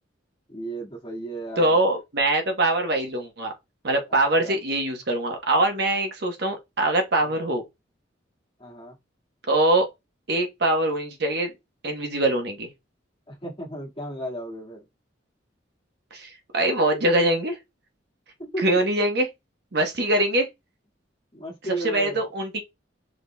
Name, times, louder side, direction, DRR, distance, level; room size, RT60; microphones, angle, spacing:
voice 1, 0.5-1.8 4.4-4.6 7.2-7.5 8.6-8.9 13.3-14.8 18.4-18.6 21.3-22.3, right 1 dB, 25° left, 1.7 m, -34 dB
voice 2, 1.6-3.5 3.8-7.6 9.5-9.9 10.3-11.5 11.8-12.7 16.1-17.6 18.6-19.3 19.7-20.5 21.8-22.6, right 1 dB, 60° right, 1.0 m, -23 dB
5.0 x 3.8 x 2.2 m
head